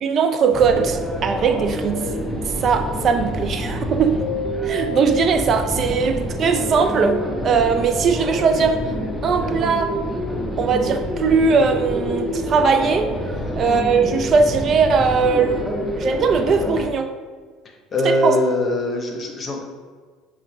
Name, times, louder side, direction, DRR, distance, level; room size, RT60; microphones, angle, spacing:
voice 1, 0.0-2.1 2.5-4.3 4.6-8.8 9.2-10.0 10.6-13.2 13.6-17.1 18.0-18.4, right 5 dB, 40° right, 7 dB, 0.3 m, -19 dB
sound 1, 0.5-16.9, equal, ahead, 0.7 m, -27 dB
voice 2, 17.9-19.6, left 1 dB, 30° left, 2 dB, 0.8 m, -22 dB
5.5 x 2.6 x 3.0 m, 1.5 s
figure-of-eight pair, 60°, 0 cm